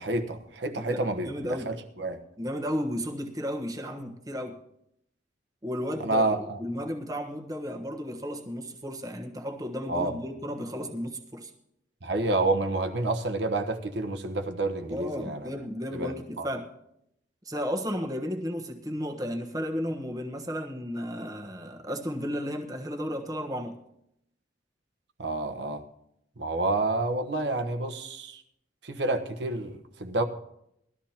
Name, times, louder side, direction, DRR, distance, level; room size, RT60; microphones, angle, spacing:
voice 1, 0.0-2.2 6.0-6.6 9.9-10.1 12.0-15.5 15.9-16.1 16.4-16.5 25.2-25.8 26.4-28.4 28.8-30.2, right 2 dB, 75° right, 6 dB, 1.2 m, -29 dB
voice 2, 0.9-1.7 2.4-4.6 5.6-11.5 14.9-16.7 17.4-23.8, equal, 20° right, 2 dB, 1.2 m, -33 dB
19.5 x 13.0 x 2.9 m, 0.79 s
head